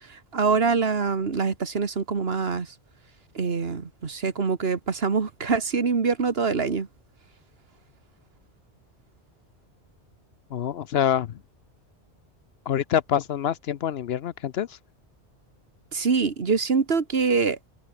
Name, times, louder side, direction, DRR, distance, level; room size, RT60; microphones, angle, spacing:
voice 1, 0.0-2.7 3.4-6.9 15.9-17.6, right 5 dB, 60° right, 1.8 m, -24 dB
voice 2, 10.5-11.4 12.7-14.8, left 9 dB, 65° left, 0.9 m, -26 dB
omnidirectional pair, 1.2 m